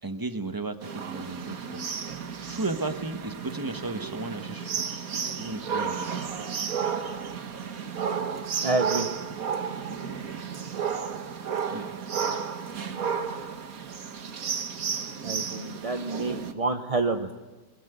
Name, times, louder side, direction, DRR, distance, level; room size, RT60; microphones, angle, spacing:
voice 1, 0.0-1.8 2.5-4.9 5.4-6.1 11.4-11.9, right 3 dB, 15° right, 10 dB, 1.1 m, -34 dB
sound 1, 0.8-16.5, right 6 dB, 55° right, 1.8 m, -32 dB
voice 2, 8.6-9.1 15.2-17.3, right 3 dB, 30° right, 7 dB, 0.6 m, -28 dB
22.5 x 21.5 x 8.1 m, 1.2 s
omnidirectional pair, 1.9 m